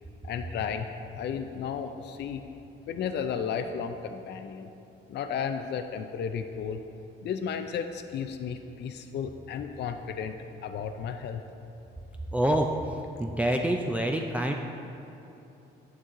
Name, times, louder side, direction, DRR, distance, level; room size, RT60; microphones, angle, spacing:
voice 1, 0.2-2.4 2.9-4.7 5.1-6.8 7.2-10.4 10.6-11.4, left 7 dB, 60° left, 7 dB, 0.4 m, -33 dB
voice 2, 12.3-14.5, right 1 dB, 5° right, 2 dB, 0.4 m, -27 dB
9.4 x 6.1 x 3.7 m, 2.9 s
cardioid pair, 90°, 20 cm